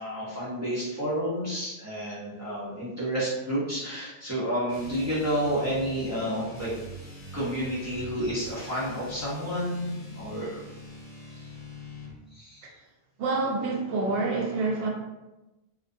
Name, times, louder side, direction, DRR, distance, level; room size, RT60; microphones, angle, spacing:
voice 1, 0.0-6.7 7.3-10.6 12.3-12.6, equal, 20° right, -10 dB, 0.7 m, -30 dB
sound 1, 4.7-12.2, left 1 dB, 65° left, 0.9 m, -44 dB
voice 2, 13.2-14.9, right 3 dB, 70° right, -1 dB, 0.8 m, -27 dB
2.4 x 2.1 x 2.5 m, 1.0 s
omnidirectional pair, 1.1 m